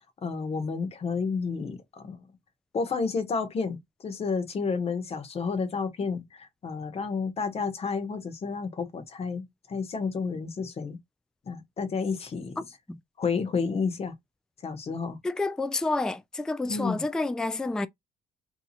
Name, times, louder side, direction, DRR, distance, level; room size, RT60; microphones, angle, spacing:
voice 1, 0.2-2.2 2.7-11.0 11.5-12.6 13.2-14.1 14.6-15.2 16.7-17.0, left 5 dB, 35° left, 1.0 m, -31 dB
voice 2, 12.6-13.0 15.2-17.9, left 2 dB, 5° left, 0.3 m, -29 dB
2.8 x 2.3 x 4.1 m
cardioid pair, 110°, 17 cm